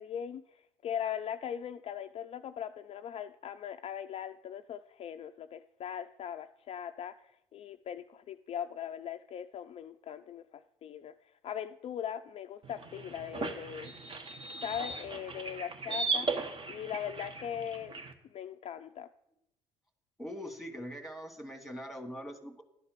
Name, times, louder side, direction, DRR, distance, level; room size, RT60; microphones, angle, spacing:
voice 1, 0.0-13.9 14.6-16.3 16.7-18.0 18.3-19.1, left 9 dB, 40° left, 8 dB, 0.4 m, -40 dB
sound 1, 12.6-18.1, right 4 dB, 35° right, 1.2 m, -37 dB
voice 2, 20.2-22.6, equal, ahead, 5 dB, 1.8 m, -42 dB
11.0 x 4.2 x 6.7 m, 0.80 s
hypercardioid pair, 60°, 15 cm